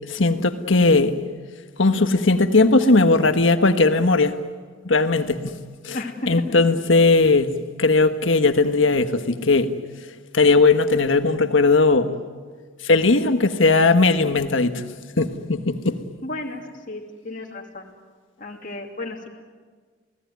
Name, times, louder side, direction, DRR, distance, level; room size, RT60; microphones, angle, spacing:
voice 1, 0.1-1.2 1.8-4.4 4.8-5.6 5.8-6.0 6.3-7.5 7.8-9.7 10.3-12.1 12.8-14.8 15.2-16.0, left 3 dB, 90° left, 1.5 m, -18 dB
voice 2, 5.9-6.3 16.2-16.6 16.9-17.9 18.4-19.3, left 2 dB, 45° left, 2.7 m, -33 dB
28.5 x 18.5 x 9.5 m
head